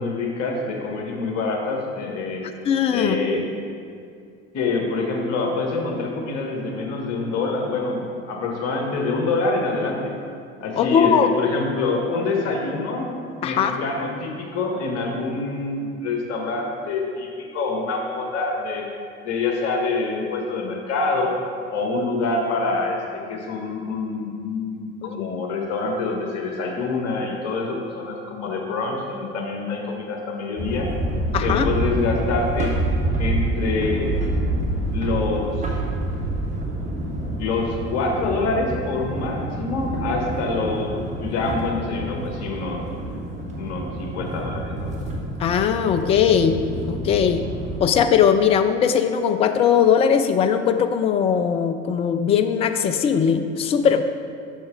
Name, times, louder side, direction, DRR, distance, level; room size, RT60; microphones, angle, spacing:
voice 1, 0.0-2.4 2.9-3.4 4.5-10.2 10.6-13.1 13.4-18.9 19.2-21.4 21.7-30.9 31.4-32.7 33.2-34.1 34.9-35.8 37.4-41.0 41.2-42.8 43.6-45.1, left 3 dB, 45° left, 1 dB, 1.4 m, -26 dB
voice 2, 2.7-3.2 10.8-11.3 13.4-13.8 25.0-25.1 31.3-31.7 45.4-46.6 46.9-47.4 47.8-54.0, left 7 dB, 20° left, 9 dB, 0.3 m, -19 dB
sound 1, 30.6-47.8, right 1 dB, 20° right, 1.2 m, -27 dB
6.2 x 5.9 x 5.0 m, 2.3 s
figure-of-eight pair, 70°, 35 cm